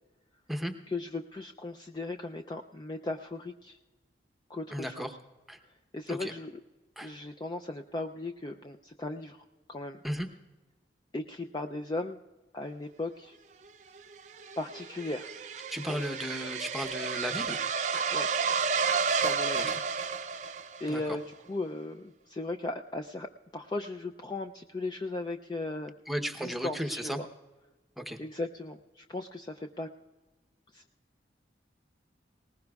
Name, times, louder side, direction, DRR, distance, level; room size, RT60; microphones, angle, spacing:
voice 1, 0.9-3.8 4.5-5.2 5.9-6.6 7.0-9.4 9.7-10.0 11.1-12.2 12.5-13.4 14.6-16.0 18.1-18.3 19.2-19.7 20.3-20.5 20.8-21.2 21.5-23.3 23.5-25.9 26.4-27.3 28.2-29.9 30.7-30.8, left 2 dB, 25° left, 5 dB, 0.4 m, -37 dB
voice 2, 4.7-5.1 5.5-5.6 6.1-6.3 7.0-7.1 10.0-10.3 15.7-17.6 17.9-18.0 19.6-19.8 20.9-21.0 26.1-27.2 28.0-28.2, equal, ahead, 6 dB, 0.8 m, -35 dB
sound 1, 14.0-21.1, right 5 dB, 40° right, 0.5 m, -31 dB
20.5 x 19.0 x 2.3 m, 1.2 s
head